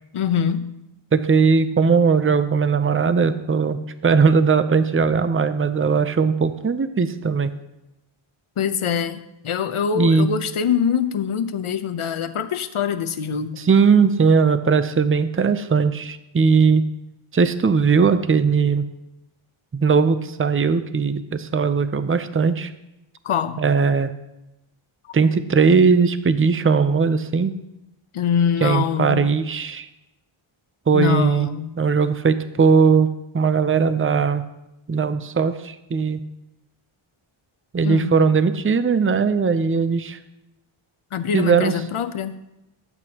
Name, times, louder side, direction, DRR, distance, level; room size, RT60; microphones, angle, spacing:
voice 1, 0.1-0.7 8.6-13.6 23.2-23.6 28.1-29.3 30.9-31.8 37.8-38.2 41.1-42.4, left 7 dB, 80° left, 10 dB, 0.9 m, -24 dB
voice 2, 1.1-7.5 9.9-10.3 13.6-16.8 17.3-18.9 19.7-22.7 23.6-24.1 25.1-27.5 28.6-29.9 30.9-31.5 31.8-33.1 33.3-34.4 34.9-36.2 37.7-40.2 41.3-41.7, right 5 dB, 25° right, 11 dB, 0.6 m, -19 dB
20.0 x 8.2 x 2.9 m, 0.90 s
wide cardioid pair, 95°, 50 cm